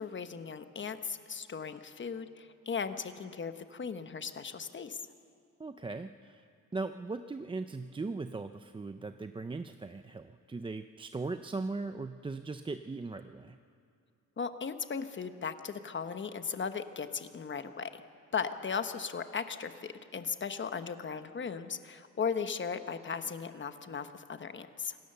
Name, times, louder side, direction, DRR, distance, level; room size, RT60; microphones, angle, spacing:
voice 1, 0.0-5.0 14.4-18.0 18.3-25.0, left 6 dB, 40° left, 9 dB, 1.1 m, -37 dB
voice 2, 5.6-6.4 6.7-13.6, right 3 dB, 15° right, 9 dB, 0.5 m, -39 dB
26.0 x 18.0 x 6.8 m, 2.4 s
wide cardioid pair, 125°, 31 cm